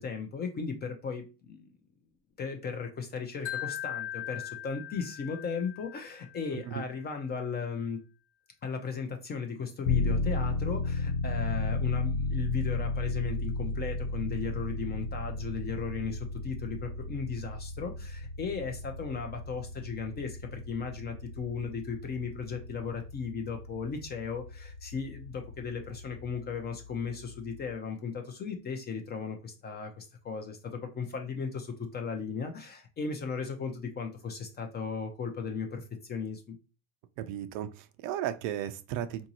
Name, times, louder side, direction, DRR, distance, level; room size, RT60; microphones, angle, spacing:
voice 1, 0.0-1.7 2.4-8.0 8.6-36.6, left 5 dB, 25° left, 0.4 m, -36 dB
Wind chime, 3.5-6.6, left 12 dB, 50° left, 1.1 m, -39 dB
voice 2, 6.5-6.8 37.2-39.3, right 11 dB, 60° right, 0.5 m, -35 dB
sound 1, 9.8-26.2, left 2 dB, 70° left, 0.7 m, -35 dB
3.7 x 2.7 x 2.8 m
supercardioid pair, 115°, 46 cm